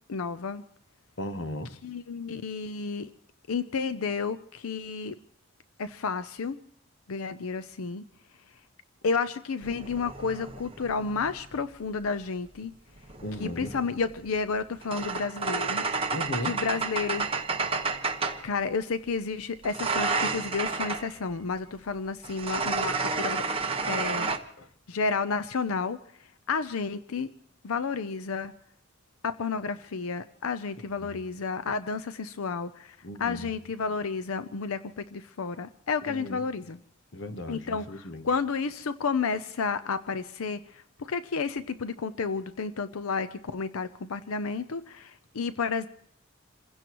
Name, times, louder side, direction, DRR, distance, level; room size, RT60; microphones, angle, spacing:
voice 1, 0.1-0.6 1.8-3.1 3.5-5.2 5.8-6.6 7.1-8.0 9.0-12.7 13.4-15.8 16.4-17.3 18.4-23.4 23.9-24.3 24.9-26.0 26.5-27.3 27.6-28.5 29.2-36.8 37.5-45.9, left 5 dB, 90° left, 0.6 m, -31 dB
voice 2, 1.2-1.7 13.2-13.7 16.1-16.6 24.6-24.7 31.0-31.1 33.0-33.5 36.1-36.4 37.1-38.3, left 1 dB, 60° left, 1.1 m, -36 dB
sound 1, 9.6-11.7 13.0-18.5 19.6-21.1 22.2-24.4, right 4 dB, 25° right, 1.2 m, -31 dB
28.0 x 16.0 x 3.0 m
head